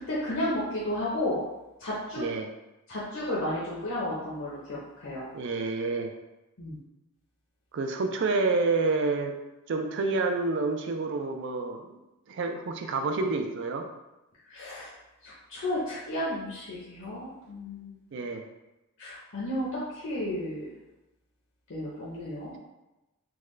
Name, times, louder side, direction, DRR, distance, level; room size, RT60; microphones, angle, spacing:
voice 1, 0.1-1.4 1.8-2.2 2.9-5.3 6.6-6.8 14.5-14.9 15.2-18.0 19.0-20.7 21.7-22.5, left 1 dB, 60° left, -8 dB, 0.7 m, -33 dB
voice 2, 2.2-2.5 5.3-6.2 7.7-9.4 9.7-12.0 12.3-13.9 18.1-18.5, right 3 dB, 55° right, 5 dB, 0.4 m, -28 dB
3.5 x 2.2 x 3.1 m, 0.98 s
head